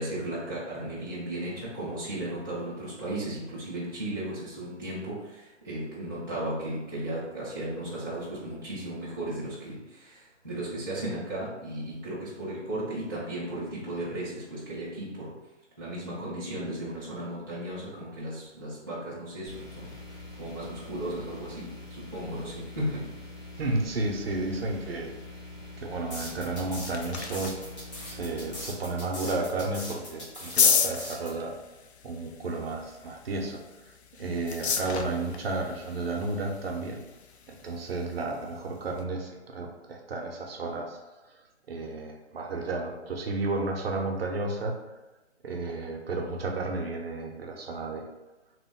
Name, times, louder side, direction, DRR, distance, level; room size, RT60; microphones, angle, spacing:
voice 1, 0.0-15.4 15.8-19.9 20.4-23.1, right 1 dB, 20° right, -10 dB, 0.4 m, -35 dB
sound 1, 19.5-28.6, left 2 dB, 85° left, 1.4 m, -44 dB
voice 2, 23.6-25.1 25.8-27.6 28.1-31.5 32.0-33.6 34.2-37.0 37.5-41.0 41.7-44.8 45.4-48.1, right 2 dB, 55° right, 2 dB, 0.6 m, -32 dB
sound 2, 26.1-31.3, left 1 dB, 25° left, 1.0 m, -40 dB
sound 3, 26.5-39.0, left 6 dB, 65° left, 0.5 m, -34 dB
3.0 x 2.1 x 3.4 m, 1.1 s
hypercardioid pair, 150°, 36 cm